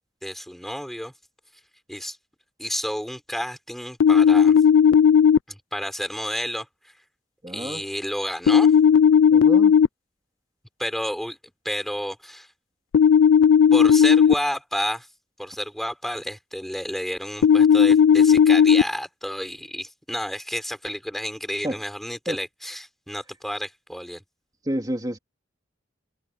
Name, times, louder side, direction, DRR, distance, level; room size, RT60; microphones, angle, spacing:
voice 1, 0.2-1.1 1.9-2.2 2.6-4.6 5.5-6.9 7.5-8.7 10.8-11.4 11.6-12.5 13.7-15.1 15.4-24.2, equal, ahead, 4.2 m, -31 dB
sound 1, 4.0-5.4 8.5-9.9 12.9-14.3 17.4-18.8, left 7 dB, 85° left, 0.4 m, -15 dB
voice 2, 7.4-7.8 9.3-9.7 21.6-21.8 22.3-22.4 24.7-25.2, right 1 dB, 20° right, 3.4 m, -29 dB
open air
head